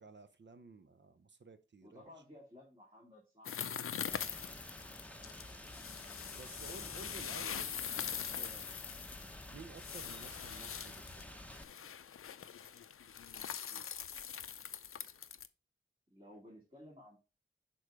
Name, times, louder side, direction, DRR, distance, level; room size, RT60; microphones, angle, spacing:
voice 1, 0.0-2.0 6.3-8.7 9.5-11.3, right 4 dB, 60° right, 0.7 m, -54 dB
voice 2, 1.8-3.6 4.1-4.6 16.1-17.2, left 1 dB, 25° right, 2.4 m, -56 dB
sound 1, 3.4-15.5, left 8 dB, 85° left, 0.4 m, -43 dB
Rain, 4.1-11.6, left 1 dB, 5° left, 0.8 m, -50 dB
6.4 x 3.8 x 4.8 m
wide cardioid pair, 80°, 21 cm